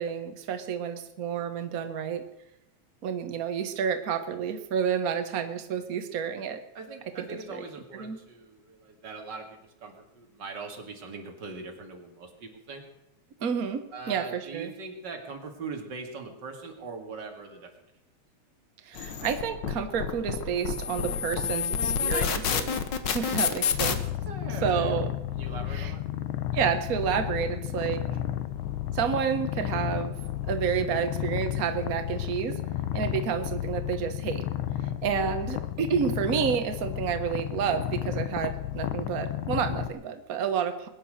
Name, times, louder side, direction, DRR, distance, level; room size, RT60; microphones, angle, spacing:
voice 1, 0.0-2.2 3.0-6.6 7.2-7.3 7.5-7.6 8.0-8.2 13.4-14.7 18.9-22.8 23.1-24.0 24.6-25.1 25.7-25.9 26.5-28.0 28.9-30.1 30.5-32.6 32.9-34.5 35.0-40.9, right 7 dB, 85° right, 8 dB, 0.7 m, -30 dB
voice 2, 6.7-12.8 13.9-17.7 24.2-25.1 25.3-26.0, right 4 dB, 40° right, 3 dB, 2.5 m, -41 dB
sound 1, 19.0-23.9, left 7 dB, 55° left, 1.2 m, -28 dB
Purr, 23.7-39.9, left 12 dB, 90° left, 1.1 m, -32 dB
21.5 x 10.0 x 6.4 m, 0.84 s
omnidirectional pair, 3.3 m